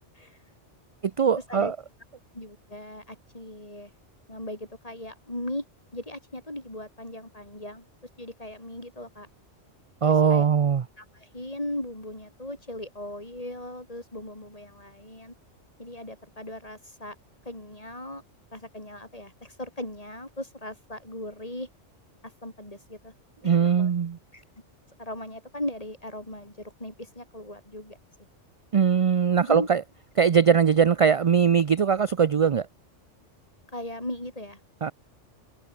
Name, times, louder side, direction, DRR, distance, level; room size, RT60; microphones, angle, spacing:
voice 1, 1.0-1.8 10.0-10.8 23.4-24.2 28.7-29.8 30.2-32.7 34.8-34.9, right 7 dB, 50° right, 0.4 m, -21 dB
voice 2, 2.3-3.9 4.3-5.6 5.9-7.9 8.2-9.3 10.0-10.4 11.0-15.4 15.8-17.2 17.4-18.2 18.5-21.7 22.2-23.1 23.4-23.9 24.3-24.4 25.0-28.0 29.5-29.7 30.7-30.8 33.7-34.6, left 1 dB, 30° left, 5.0 m, -38 dB
omnidirectional pair, 1.2 m